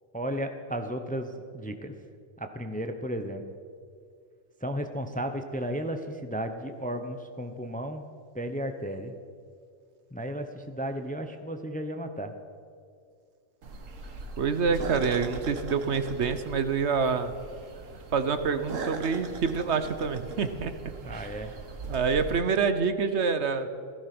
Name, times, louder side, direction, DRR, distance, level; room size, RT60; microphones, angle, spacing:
voice 1, 0.1-1.9 2.4-3.4 4.6-8.0 8.3-9.2 10.1-12.3 21.0-21.5, equal, 10° left, 7 dB, 0.7 m, -34 dB
sound 1, 13.6-22.4, right 3 dB, 85° right, 1.7 m, -40 dB
voice 2, 14.4-17.3 18.1-20.7 21.1-21.3 21.9-23.7, right 5 dB, 60° right, 10 dB, 1.1 m, -27 dB
16.0 x 14.5 x 6.0 m, 2.2 s
omnidirectional pair, 1.3 m